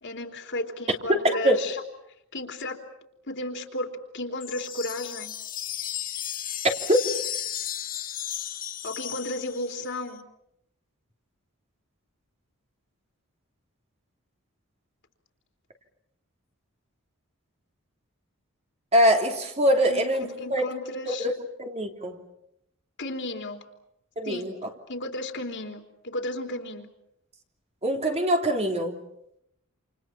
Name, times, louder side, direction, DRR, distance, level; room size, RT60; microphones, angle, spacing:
voice 1, 0.0-1.8 2.3-2.8 3.3-3.9 4.1-5.3 8.8-10.3 19.9-21.3 23.0-23.6 24.2-24.5 24.9-26.9, left 1 dB, 55° left, 4 dB, 3.5 m, -33 dB
voice 2, 1.1-1.6 6.9-7.0 18.9-20.6 21.1-21.3 21.6-22.2 24.2-24.5 27.8-29.0, equal, 30° right, 3 dB, 3.1 m, -23 dB
sound 1, 4.4-9.9, left 10 dB, 40° left, 1.6 m, -34 dB
28.5 x 28.5 x 5.9 m, 0.79 s
head